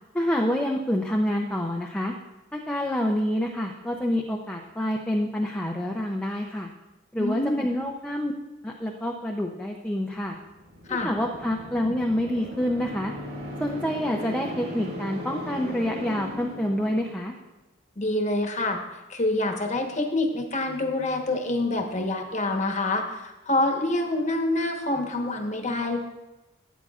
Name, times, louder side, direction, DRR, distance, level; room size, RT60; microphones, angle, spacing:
voice 1, 0.1-2.1 2.5-6.7 7.1-8.3 8.6-10.4 10.9-13.1 13.6-17.3, left 1 dB, 5° left, 0 dB, 0.5 m, -27 dB
voice 2, 7.2-7.7 10.9-11.1 18.0-18.8 19.1-26.0, left 2 dB, 35° left, 3 dB, 1.1 m, -26 dB
sound 1, 10.5-17.4, equal, 55° right, 1.9 m, -38 dB
14.0 x 8.3 x 2.4 m, 1.0 s
head